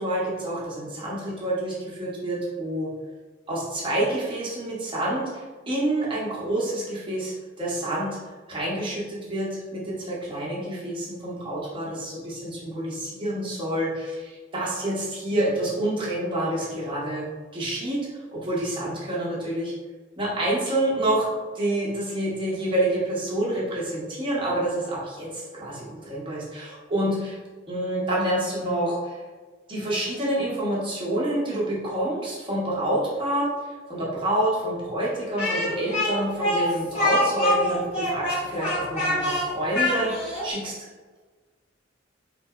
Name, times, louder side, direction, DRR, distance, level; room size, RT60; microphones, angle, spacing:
voice 1, 0.0-2.9 3.5-8.2 8.5-17.2 17.5-19.7 20.2-21.3 21.5-27.4 27.7-29.2 29.7-33.5 33.9-40.9, right 1 dB, 25° right, -6 dB, 0.7 m, -28 dB
Speech, 35.4-40.5, left 1 dB, 35° left, 1.5 m, -25 dB
3.7 x 2.7 x 2.3 m, 1.4 s
head